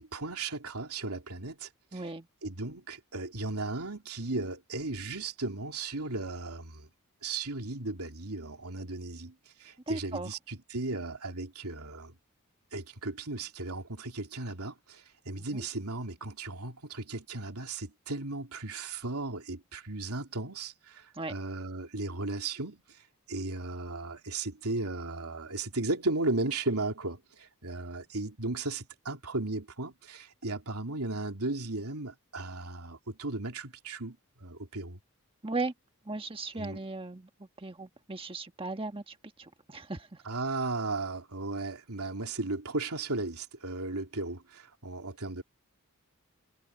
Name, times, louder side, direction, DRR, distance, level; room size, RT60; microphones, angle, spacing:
voice 1, 0.0-2.0 2.4-6.9 7.2-12.1 12.7-22.8 23.3-35.0 36.5-36.8 40.2-45.4, right 2 dB, 85° right, 3.2 m, -36 dB
voice 2, 1.9-2.3 9.9-10.3 15.3-15.7 21.1-21.3 35.4-35.7 36.0-40.1, right 3 dB, 25° right, 1.5 m, -37 dB
head